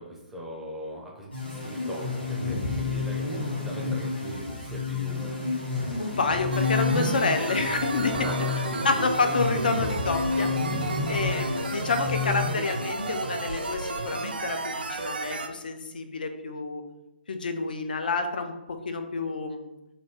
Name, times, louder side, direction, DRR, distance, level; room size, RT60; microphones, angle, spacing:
voice 1, 0.0-5.3 8.1-9.0, right 1 dB, 5° right, -3 dB, 0.5 m, -39 dB
sound 1, 1.3-13.1, left 4 dB, 70° left, 1.2 m, -30 dB
sound 2, 5.7-13.7, equal, 90° left, 1.2 m, -45 dB
voice 2, 6.0-8.1 8.8-10.5 11.1-16.8 17.3-19.7, left 4 dB, 55° left, 6 dB, 0.4 m, -29 dB
sound 3, 6.5-15.5, right 3 dB, 65° right, 0.4 m, -32 dB
2.7 x 2.5 x 3.2 m, 0.93 s
figure-of-eight pair, 130°, 6 cm